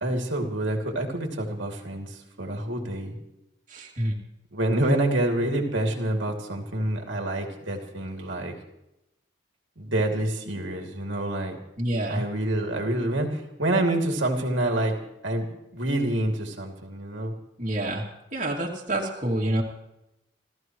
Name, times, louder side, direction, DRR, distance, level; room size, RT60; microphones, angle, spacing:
voice 1, 0.0-3.2 4.5-8.5 9.8-11.6 12.1-15.0 15.2-15.5 15.7-17.3, right 1 dB, 80° right, 2 dB, 2.7 m, -27 dB
voice 2, 3.7-4.2 11.8-12.2 17.6-18.0 18.3-19.6, right 1 dB, 40° right, -2 dB, 2.6 m, -27 dB
29.5 x 14.5 x 3.1 m, 0.87 s
head